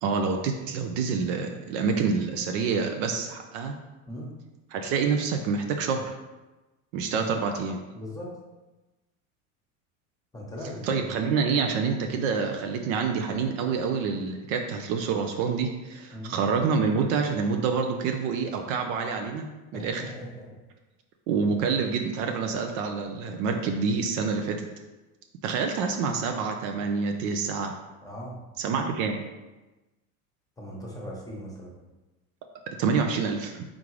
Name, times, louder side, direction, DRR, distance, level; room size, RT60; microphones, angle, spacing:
voice 1, 0.0-3.7 4.7-6.1 6.9-7.8 10.8-19.4 19.7-20.1 21.3-24.7 25.4-27.7 28.6-29.2 32.8-33.6, right 5 dB, 55° right, 4 dB, 0.6 m, -27 dB
voice 2, 7.9-8.3 10.3-11.2 16.1-16.4 19.7-20.5 28.0-28.4 30.6-31.7, equal, 10° left, -3 dB, 1.1 m, -39 dB
3.6 x 3.6 x 3.1 m, 1.1 s
hypercardioid pair, 90°, 42 cm